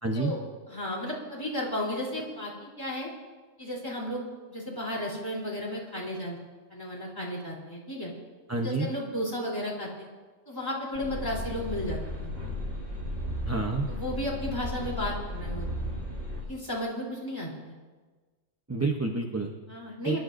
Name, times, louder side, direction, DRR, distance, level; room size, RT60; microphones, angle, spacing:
voice 1, 0.0-0.3 8.5-8.9 13.5-13.9 18.7-19.5 20.0-20.2, right 3 dB, 15° right, 2 dB, 0.6 m, -28 dB
voice 2, 0.7-3.1 3.6-4.2 4.5-6.4 6.7-8.1 8.6-10.1 10.5-12.3 13.9-16.0 16.4-17.7 19.7-20.2, left 1 dB, 15° left, -5 dB, 3.4 m, -34 dB
sound 1, 10.9-16.4, left 1 dB, 70° right, 4.8 m, -35 dB
26.0 x 12.0 x 2.6 m, 1.3 s
omnidirectional pair, 1.3 m